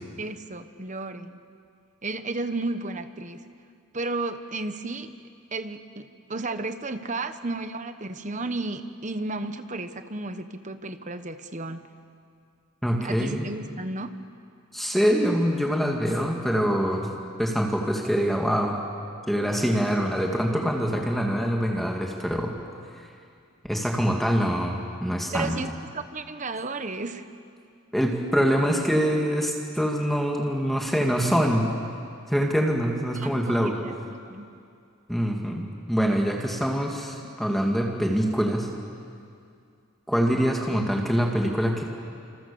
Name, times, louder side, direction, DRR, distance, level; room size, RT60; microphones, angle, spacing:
voice 1, 0.2-1.4 2.0-3.4 3.9-5.1 5.5-11.9 13.0-14.1 25.3-27.2 33.1-34.5, right 2 dB, 35° right, 9 dB, 1.2 m, -33 dB
voice 2, 12.8-13.5 14.7-17.1 17.4-18.8 19.3-22.5 23.6-25.6 27.9-31.7 32.3-33.7 35.1-38.7 40.1-41.8, equal, ahead, 0 dB, 2.2 m, -24 dB
29.0 x 27.5 x 7.1 m, 2.4 s
head